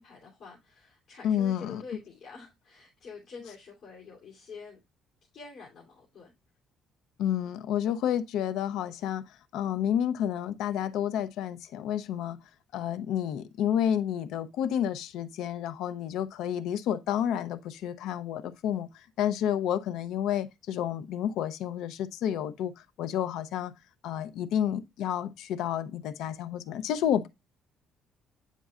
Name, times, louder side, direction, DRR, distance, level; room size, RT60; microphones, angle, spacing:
voice 1, 0.0-4.8 5.3-6.3, left 4 dB, 45° left, 2.9 m, -47 dB
voice 2, 1.2-1.8 7.2-12.4 12.7-23.7 24.0-27.3, left 10 dB, 75° left, 0.7 m, -30 dB
9.1 x 5.3 x 2.4 m
cardioid pair, 160°, 0 cm